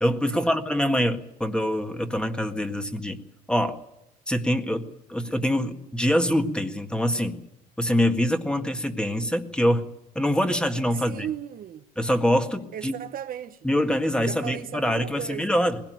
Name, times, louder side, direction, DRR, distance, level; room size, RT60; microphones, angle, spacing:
voice 1, 0.0-3.2 3.5-3.8 4.3-7.4 7.8-9.9 10.2-11.3 12.0-13.0 13.6-15.8, equal, 5° left, 1.8 m, -24 dB
voice 2, 10.9-11.9 12.7-13.6 14.2-15.5, right 10 dB, 55° right, 1.0 m, -36 dB
20.5 x 17.0 x 9.2 m
cardioid pair, 110°, 17 cm